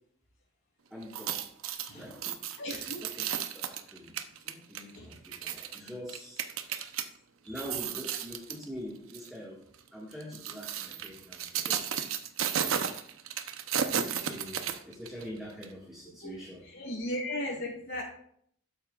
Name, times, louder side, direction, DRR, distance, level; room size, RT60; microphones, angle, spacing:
voice 1, 0.9-1.4 1.8-2.4 3.2-3.3 3.5-4.1 4.4-7.0 7.4-9.6 9.9-12.0 12.6-13.0 13.8-16.6, equal, ahead, -5 dB, 1.7 m, -45 dB
sound 1, 1.0-7.1 7.5-8.6 9.1-9.3 10.1-15.2 15.6-15.7, right 8 dB, 75° right, 0.8 m, -34 dB
voice 2, 2.6-3.0 4.9-5.2 16.2-18.0, left 1 dB, 65° left, -4 dB, 3.7 m, -37 dB
12.0 x 8.7 x 2.4 m, 0.66 s
head